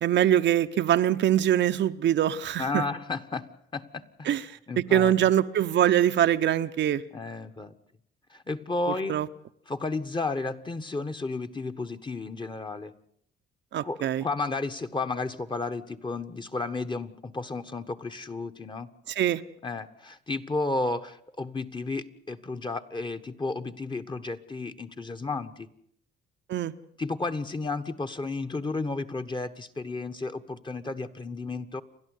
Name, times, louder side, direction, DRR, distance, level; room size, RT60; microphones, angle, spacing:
voice 1, 0.0-2.8 4.3-4.4 4.8-7.0 9.1-9.3 13.7-14.2 19.1-19.4 26.5-26.7, right 11 dB, 65° right, 0.9 m, -23 dB
voice 2, 2.6-4.3 4.7-5.2 7.1-7.7 8.3-9.2 9.7-12.9 13.8-18.9 19.6-25.7 27.0-31.8, left 3 dB, 25° left, 1.5 m, -33 dB
29.5 x 12.0 x 8.3 m
cardioid pair, 90°, 20 cm